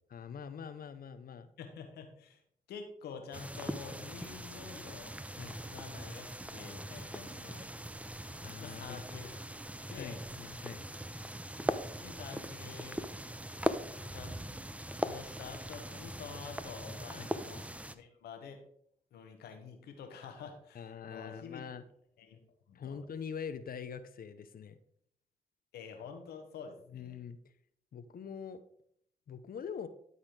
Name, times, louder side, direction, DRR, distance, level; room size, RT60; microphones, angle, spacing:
voice 1, 0.1-1.5 5.4-5.5 8.4-9.0 9.9-10.8 17.2-17.3 20.7-21.8 22.7-24.8 26.9-27.4 27.9-28.6 29.3-29.9, left 7 dB, 65° left, 12 dB, 0.7 m, -44 dB
voice 2, 1.6-2.4 2.7-5.1 5.7-7.7 8.6-9.3 9.9-10.2 12.0-13.0 13.9-14.4 15.0-17.7 17.9-18.6 19.1-21.7 22.2-22.4 22.7-23.0 25.7-27.1, left 6 dB, 90° left, 5 dB, 1.2 m, -48 dB
sound 1, 3.3-18.0, right 1 dB, 10° right, 0.7 m, -40 dB
12.0 x 4.2 x 4.8 m, 0.67 s
supercardioid pair, 40°, 16 cm